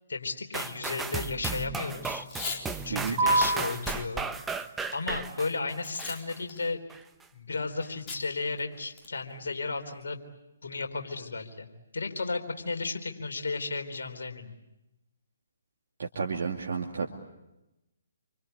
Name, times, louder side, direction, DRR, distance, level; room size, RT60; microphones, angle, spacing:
voice 1, 0.1-2.3 2.8-4.2 4.9-6.8 7.3-10.2 10.6-11.7 11.9-14.5, left 3 dB, 65° left, 5 dB, 3.8 m, -34 dB
sound 1, 0.5-6.4 6.9-7.0, right 4 dB, 10° right, 1.1 m, -35 dB
Packing tape duct tape / Tearing, 2.2-2.6 3.1-3.2 3.7-4.0 4.5-5.1 5.8-6.2 6.5-6.6 8.1-8.2 8.6-8.7 9.0-9.3, left 4 dB, 25° left, 4.1 m, -38 dB
sound 2, 3.2-10.2, right 2 dB, 30° right, 5.3 m, -35 dB
voice 2, 16.0-17.1, right 5 dB, 60° right, 0 dB, 2.4 m, -31 dB
28.0 x 25.0 x 8.3 m, 0.94 s
figure-of-eight pair, 135°, 0 cm